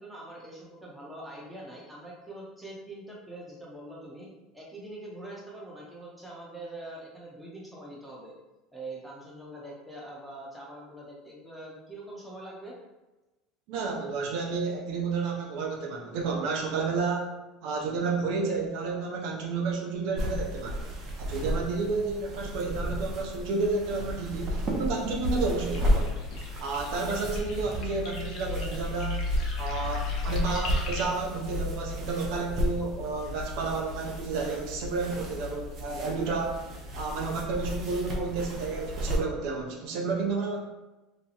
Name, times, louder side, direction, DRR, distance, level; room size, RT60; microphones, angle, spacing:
voice 1, 0.0-4.3 4.5-8.3 8.7-12.7, right 1 dB, ahead, -5 dB, 1.0 m, -43 dB
voice 2, 13.7-17.3 17.6-20.8 21.2-26.2 26.6-29.2 29.6-36.6 36.9-40.6, right 4 dB, 70° right, 0 dB, 0.6 m, -31 dB
sound 1, 20.2-39.2, left 1 dB, 40° right, 0.7 m, -33 dB
sound 2, 25.5-31.1, left 1 dB, 60° left, 0.9 m, -39 dB
3.0 x 2.3 x 4.1 m, 1.1 s
supercardioid pair, 125°, 0 cm